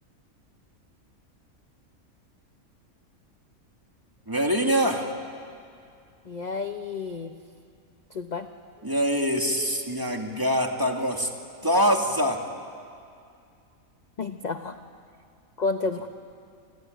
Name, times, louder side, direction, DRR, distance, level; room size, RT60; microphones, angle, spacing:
voice 1, 4.3-5.1 8.8-11.3 11.6-12.4, equal, 15° right, 2 dB, 2.3 m, -24 dB
voice 2, 6.3-7.3 8.1-8.5 14.2-14.8 15.6-16.1, left 4 dB, 35° left, 7 dB, 0.9 m, -30 dB
28.5 x 22.5 x 9.3 m, 2.4 s
omnidirectional pair, 1.5 m